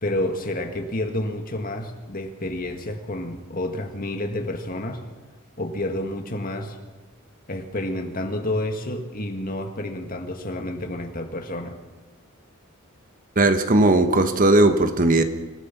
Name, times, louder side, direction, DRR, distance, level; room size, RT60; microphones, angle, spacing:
voice 1, 0.0-5.0 5.6-6.8 7.5-11.8, left 1 dB, 40° left, 5 dB, 2.0 m, -29 dB
voice 2, 13.4-15.2, right 2 dB, 40° right, 8 dB, 1.3 m, -17 dB
27.0 x 16.0 x 6.0 m, 1.2 s
head